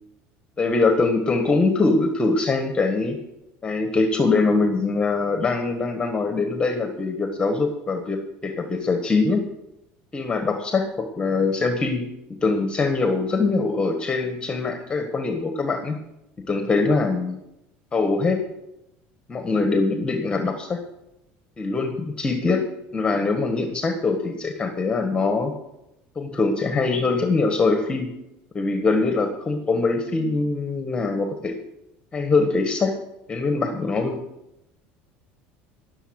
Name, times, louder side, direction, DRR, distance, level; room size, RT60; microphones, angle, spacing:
voice 1, 0.6-3.2 3.6-9.5 10.1-12.1 12.4-16.0 16.4-17.4 17.9-18.4 19.3-20.8 21.6-25.5 26.1-28.1 28.5-31.6 32.1-33.0 33.3-34.2, left 3 dB, 20° left, 6 dB, 1.5 m, -23 dB
17.0 x 6.8 x 6.5 m, 0.86 s
supercardioid pair, 120°, 5 cm